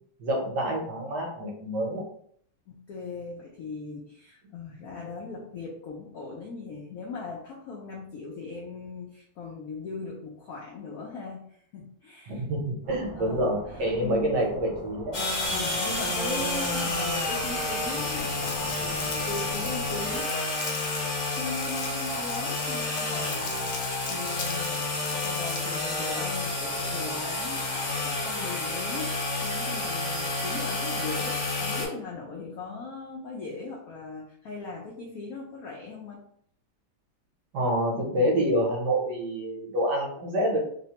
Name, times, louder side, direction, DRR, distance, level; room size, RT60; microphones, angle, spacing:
voice 1, 0.2-2.0 12.3-15.2 37.5-40.6, right 1 dB, 65° right, -1 dB, 1.3 m, -27 dB
voice 2, 2.7-12.4 13.2-14.4 15.5-20.5 20.9-23.8 24.1-24.8 25.1-36.2, left 4 dB, 85° left, -2 dB, 0.7 m, -39 dB
sound 1, 12.8-20.2, right 1 dB, 25° right, 0.6 m, -43 dB
sound 2, 15.1-31.9, left 2 dB, 55° left, 1.0 m, -30 dB
Crumpling crinkling, 18.4-25.8, left 5 dB, 70° left, 1.2 m, -40 dB
3.2 x 2.1 x 2.8 m, 0.64 s
omnidirectional pair, 2.1 m